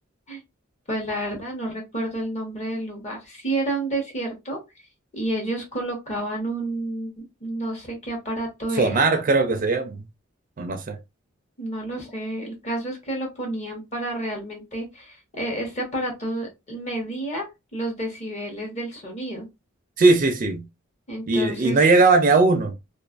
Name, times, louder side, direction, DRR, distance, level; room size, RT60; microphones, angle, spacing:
voice 1, 0.9-4.6 5.1-9.0 11.6-17.5 17.7-19.5 21.1-21.8, right 1 dB, 35° left, 1.0 m, -30 dB
voice 2, 8.7-10.0 10.6-11.0 20.0-20.6 21.3-22.7, right 3 dB, 40° right, 0.4 m, -19 dB
2.4 x 2.4 x 2.4 m
head